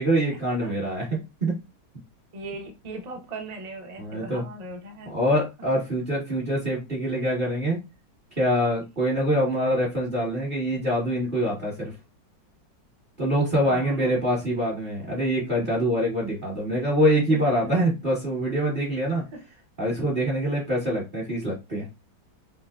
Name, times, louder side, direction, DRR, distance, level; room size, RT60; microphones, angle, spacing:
voice 1, 0.0-1.6 4.0-4.4 5.1-7.8 8.4-11.9 13.2-19.2 19.8-21.9, equal, 30° right, 1.2 m, -25 dB
voice 2, 2.3-5.1 13.6-14.2 17.3-17.5 19.3-19.4, right 2 dB, 70° right, 0.3 m, -38 dB
5.5 x 2.0 x 2.3 m
omnidirectional pair, 1.9 m